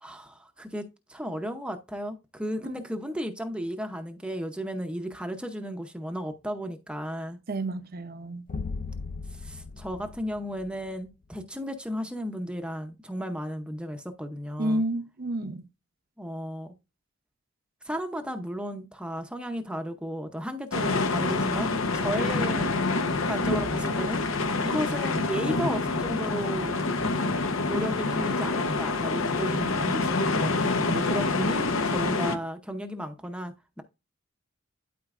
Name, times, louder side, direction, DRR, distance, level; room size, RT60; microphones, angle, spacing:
voice 1, 0.0-7.4 9.3-14.8 16.2-16.7 17.8-22.8 23.2-24.2 24.6-26.8 27.6-33.8, equal, 5° right, 0.6 m, -34 dB
voice 2, 7.5-8.5 14.6-15.7, right 1 dB, 45° right, 0.6 m, -30 dB
sound 1, 8.5-11.1, left 4 dB, 40° left, 0.4 m, -37 dB
sound 2, 20.7-32.4, left 3 dB, 75° left, 0.9 m, -27 dB
12.0 x 4.4 x 2.4 m
head